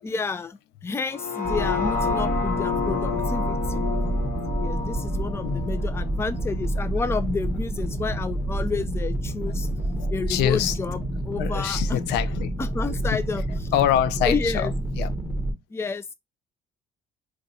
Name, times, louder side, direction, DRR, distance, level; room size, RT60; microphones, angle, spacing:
voice 1, 0.0-3.9 4.6-9.7 10.1-12.0 12.6-13.5 14.2-14.7 15.7-16.1, left 4 dB, 15° left, 0.4 m, -30 dB
sound 1, 1.1-7.2 7.6-7.7, left 5 dB, 50° left, 1.0 m, -30 dB
sound 2, 1.4-15.5, right 1 dB, 10° right, 0.8 m, -28 dB
voice 2, 9.9-10.7 11.4-12.5 12.8-13.2 13.7-14.7 15.0-15.1, left 11 dB, 90° left, 0.4 m, -25 dB
2.4 x 2.2 x 3.9 m
cardioid pair, 110°, 17 cm